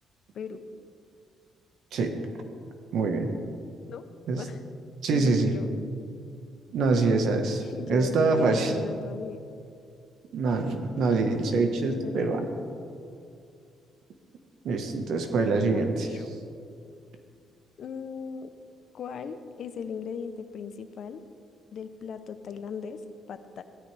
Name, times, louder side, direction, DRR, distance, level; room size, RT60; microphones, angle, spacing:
voice 1, 2.9-3.3 4.3-4.4 5.0-5.5 6.7-8.7 10.3-12.5 14.6-16.1, right 3 dB, 70° right, 5 dB, 1.3 m, -25 dB
voice 2, 5.1-5.7 7.6-9.4 11.4-12.3 15.3-16.3 17.8-18.5 18.9-21.2 21.7-23.0 23.3-23.6, left 6 dB, 65° left, 10 dB, 0.8 m, -38 dB
16.5 x 13.0 x 3.4 m, 2.5 s
cardioid pair, 90°, 0 cm